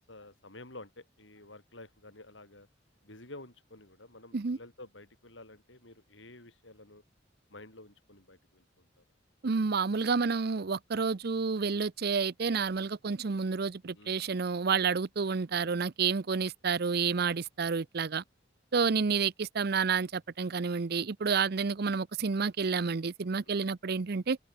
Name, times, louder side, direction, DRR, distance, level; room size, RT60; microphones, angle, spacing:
voice 1, 0.1-2.7 3.0-7.0 7.5-9.0 13.9-14.2 15.6-15.8 22.8-23.0 23.5-23.6, left 2 dB, 90° left, 7.2 m, -51 dB
voice 2, 9.4-18.2 18.7-24.4, right 5 dB, 60° right, 0.6 m, -30 dB
head